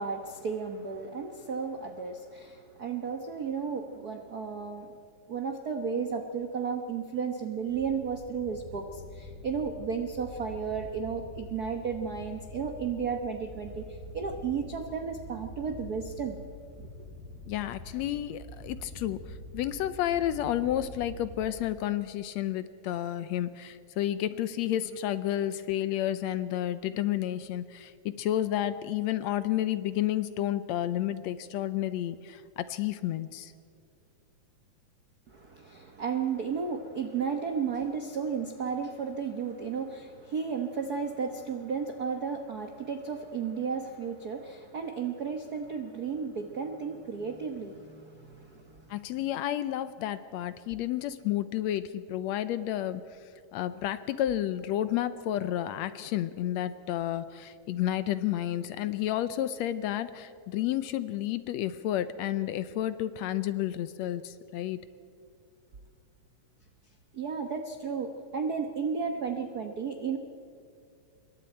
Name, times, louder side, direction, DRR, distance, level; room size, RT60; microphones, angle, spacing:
voice 1, 0.0-4.9 5.3-16.4 16.8-16.9 35.3-48.9 67.1-70.2, right 6 dB, 70° right, 5 dB, 0.9 m, -33 dB
sound 1, 7.7-21.9, equal, 10° right, 5.3 m, -46 dB
voice 2, 17.5-33.5 48.9-53.0 53.5-64.8, left 12 dB, 75° left, 13 dB, 1.7 m, -31 dB
26.5 x 22.5 x 4.4 m, 2.4 s
omnidirectional pair, 3.4 m